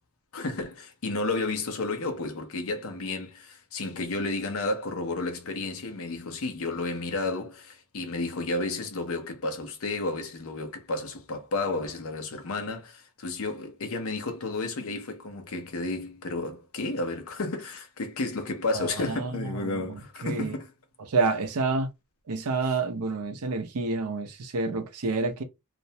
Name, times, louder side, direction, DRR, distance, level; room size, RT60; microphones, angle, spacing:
voice 1, 0.3-20.7, left 2 dB, 65° left, 0.6 m, -32 dB
voice 2, 18.7-20.6 21.0-21.9 22.3-25.4, right 3 dB, 85° right, 0.5 m, -29 dB
2.4 x 2.0 x 2.7 m
head